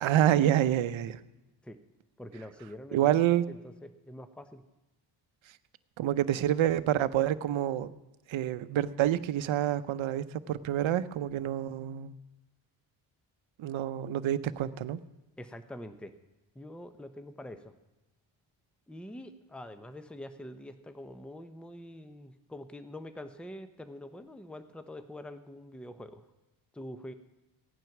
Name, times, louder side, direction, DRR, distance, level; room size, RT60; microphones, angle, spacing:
voice 1, 0.0-1.2 2.9-3.4 6.0-7.9 8.3-12.1 13.6-15.0, right 11 dB, 70° right, 14 dB, 0.7 m, -27 dB
voice 2, 2.2-3.2 3.5-4.6 15.4-16.1 16.5-17.7 18.9-26.3 26.7-27.1, left 1 dB, ahead, 9 dB, 0.8 m, -45 dB
16.0 x 9.1 x 6.0 m, 1.0 s
cardioid pair, 65°, 50 cm